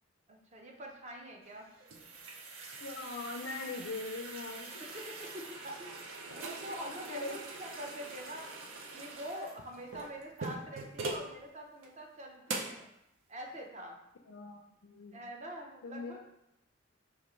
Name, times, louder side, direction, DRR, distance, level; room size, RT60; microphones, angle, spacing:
voice 1, 0.3-1.7 4.8-8.6 8.9-12.9 13.3-14.0 15.1-16.2, equal, 35° right, 1 dB, 0.6 m, -45 dB
sound 1, 1.5-11.3 11.8-11.9 12.5-12.8, right 3 dB, 85° right, 0.5 m, -43 dB
voice 2, 2.8-5.0 6.4-7.3 14.3-15.2 15.8-16.1, left 3 dB, 70° left, 2 dB, 0.4 m, -42 dB
5.1 x 2.4 x 3.0 m, 0.83 s
head